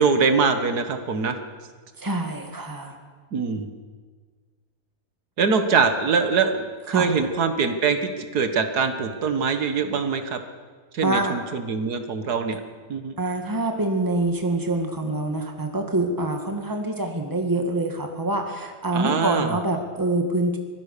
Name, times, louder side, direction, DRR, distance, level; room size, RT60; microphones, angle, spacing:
voice 1, 0.0-1.4 3.3-3.7 5.4-10.4 10.9-12.6 12.9-13.2 18.9-19.6, right 5 dB, 90° right, 7 dB, 2.0 m, -23 dB
voice 2, 2.0-3.0 6.9-7.1 11.0-11.4 13.2-20.6, right 2 dB, 15° right, 4 dB, 2.1 m, -25 dB
25.0 x 17.0 x 6.8 m, 1.5 s
omnidirectional pair, 1.6 m